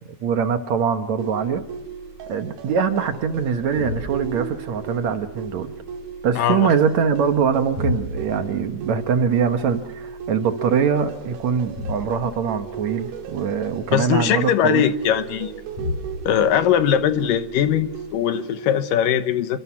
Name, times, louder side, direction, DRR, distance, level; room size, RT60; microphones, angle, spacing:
voice 1, 0.2-1.6 2.3-5.7 6.2-14.9, right 6 dB, 60° right, 8 dB, 2.2 m, -23 dB
sound 1, 1.2-18.8, right 8 dB, 90° right, 3.8 m, -36 dB
sound 2, 1.4-18.2, left 2 dB, 45° left, 4.9 m, -37 dB
voice 2, 6.4-6.7 13.9-15.5 16.2-19.6, left 9 dB, 70° left, 10 dB, 2.6 m, -20 dB
28.5 x 24.5 x 6.0 m, 0.75 s
omnidirectional pair, 4.2 m